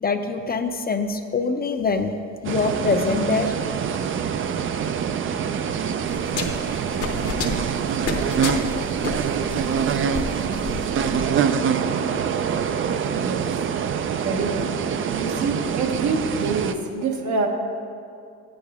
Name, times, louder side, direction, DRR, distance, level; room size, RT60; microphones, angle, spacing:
voice 1, 0.0-2.1 2.4-3.5, left 4 dB, 30° left, 6 dB, 0.6 m, -24 dB
sound 1, 2.4-16.7, right 7 dB, 45° right, 0.4 m, -25 dB
sound 2, 6.1-11.3, left 5 dB, 55° left, 1.0 m, -31 dB
voice 2, 13.1-13.8 14.2-14.8 15.2-17.5, right 4 dB, 75° right, 2 dB, 1.1 m, -26 dB
9.5 x 8.5 x 3.5 m, 2.4 s
cardioid pair, 90°, 30 cm